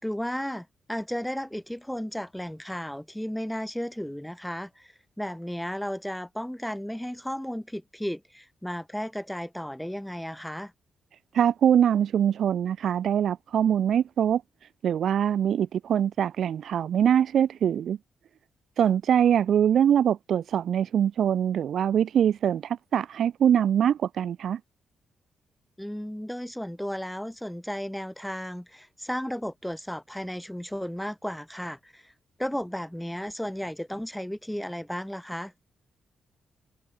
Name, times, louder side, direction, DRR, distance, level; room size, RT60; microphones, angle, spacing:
voice 1, 0.0-10.7 25.8-32.1 32.4-35.5, equal, 5° left, 3.3 m, -34 dB
voice 2, 11.3-14.4 14.8-18.0 18.8-24.6, right 9 dB, 65° right, 1.0 m, -23 dB
cardioid pair, 115°, 0 cm